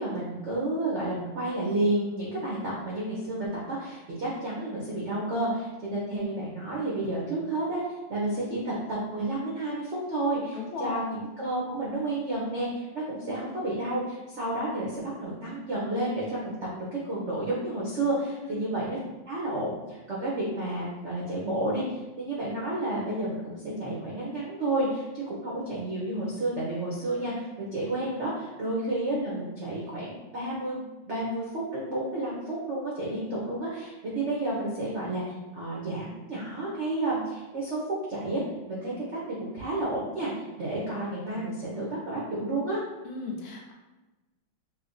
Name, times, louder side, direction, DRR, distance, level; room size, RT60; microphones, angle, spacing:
voice 1, 0.0-7.8 8.1-19.0 19.3-30.8 31.1-35.2 35.5-37.8 38.1-38.4 38.7-42.8, right 1 dB, 85° right, -6 dB, 0.6 m, -31 dB
voice 2, 10.6-10.9 18.4-18.6 43.0-43.7, left 4 dB, 80° left, -1 dB, 1.5 m, -36 dB
5.5 x 2.1 x 2.5 m, 1.1 s
omnidirectional pair, 2.2 m